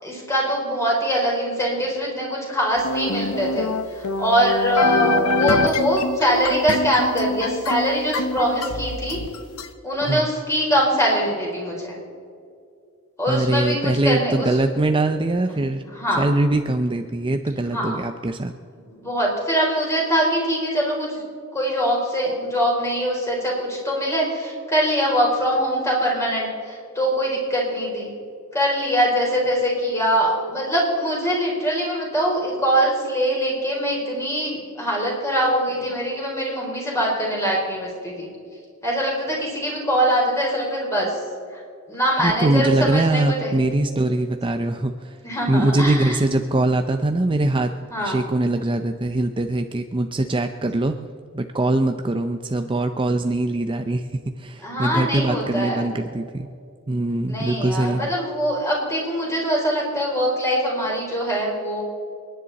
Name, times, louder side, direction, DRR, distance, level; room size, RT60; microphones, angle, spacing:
voice 1, 0.0-9.2 9.8-12.0 13.2-14.6 15.5-16.3 17.6-18.0 18.9-21.2 21.5-28.1 28.5-38.3 38.8-41.2 41.5-41.6 41.9-43.6 45.2-46.2 47.9-48.2 54.6-56.0 57.3-61.8, equal, 15° left, -3 dB, 4.4 m, -23 dB
sound 1, 2.8-9.7, left 2 dB, 90° left, 1.0 m, -25 dB
voice 2, 10.0-10.3 13.3-18.5 42.2-45.2 45.5-47.7 48.0-51.0 51.3-54.1 54.4-56.5 56.9-58.0, right 2 dB, 25° right, 6 dB, 0.6 m, -22 dB
29.0 x 10.0 x 4.1 m, 2.3 s
head